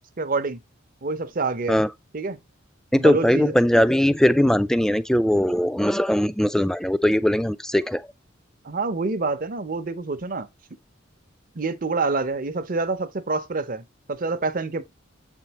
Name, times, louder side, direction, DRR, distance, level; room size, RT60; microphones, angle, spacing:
voice 1, 0.2-0.6 1.0-1.8 2.1-2.4 2.9-3.5 8.6-10.5 11.5-14.8, right 3 dB, 45° right, 0.7 m, -27 dB
voice 2, 2.9-8.0, equal, 5° left, 0.3 m, -20 dB
7.7 x 4.5 x 2.9 m
head